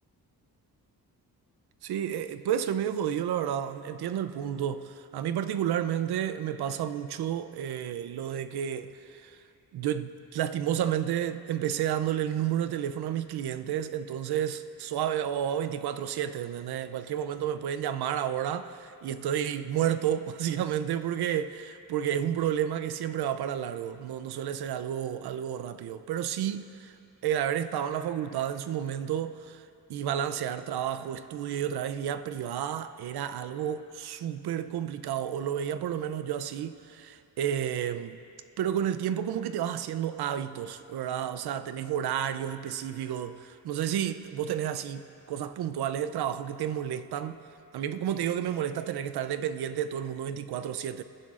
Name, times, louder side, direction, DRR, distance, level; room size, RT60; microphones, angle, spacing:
voice 1, 1.8-9.4 9.7-26.9 27.2-29.6 29.9-38.2 38.6-47.4 47.7-51.0, right 10 dB, 80° right, 0.6 m, -31 dB
24.5 x 11.0 x 2.5 m
wide cardioid pair, 135°, 38 cm